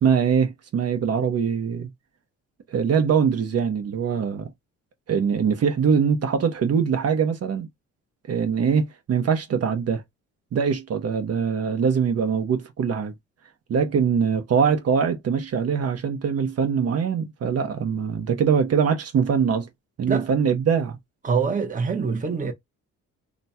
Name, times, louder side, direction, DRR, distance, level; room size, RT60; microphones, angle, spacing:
voice 1, 0.0-1.9 2.7-4.5 5.1-7.7 8.3-10.0 10.5-13.1 13.7-19.7 20.0-21.0, right 6 dB, 55° right, 1.0 m, -22 dB
voice 2, 21.2-22.5, right 5 dB, 25° right, 1.0 m, -24 dB
3.1 x 2.3 x 4.1 m
cardioid pair, 90°, 30 cm